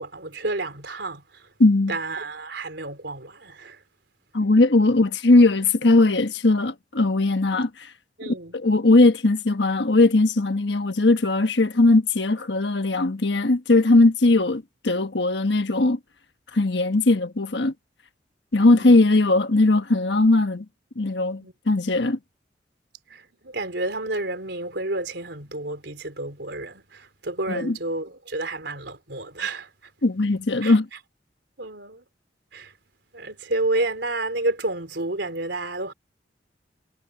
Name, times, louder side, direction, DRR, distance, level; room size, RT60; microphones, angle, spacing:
voice 1, 0.0-1.5 1.9-3.8 8.2-8.5 18.6-18.9 21.4-21.5 23.1-29.7 30.6-30.7 31.6-32.0 32.5-32.7 33.1-35.9, right 2 dB, 75° right, 3.6 m, -30 dB
voice 2, 1.6-1.9 4.3-7.7 8.6-16.0 16.5-17.7 18.5-20.6 21.0-22.2 27.5-27.8 30.0-30.9, left 2 dB, 80° left, 1.3 m, -19 dB
head